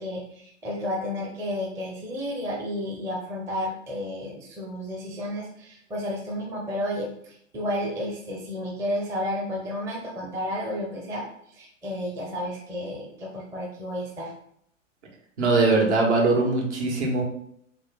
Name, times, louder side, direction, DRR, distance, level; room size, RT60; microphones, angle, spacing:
voice 1, 0.0-14.3, left 1 dB, 5° right, -4 dB, 0.6 m, -32 dB
voice 2, 15.4-17.2, right 3 dB, 60° right, 0 dB, 1.5 m, -21 dB
3.8 x 3.2 x 3.9 m, 0.68 s
figure-of-eight pair, 110°, 40 cm